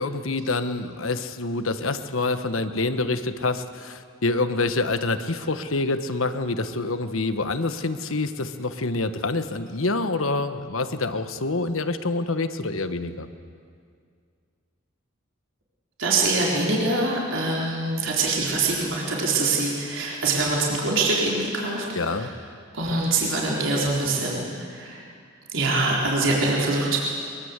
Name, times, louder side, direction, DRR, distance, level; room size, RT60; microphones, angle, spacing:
voice 1, 0.0-13.3 22.0-22.3, left 3 dB, 75° left, 10 dB, 1.3 m, -26 dB
voice 2, 16.0-22.3 22.7-25.0 25.5-27.0, right 2 dB, 65° right, -3 dB, 4.1 m, -24 dB
23.0 x 22.5 x 8.2 m, 2.2 s
head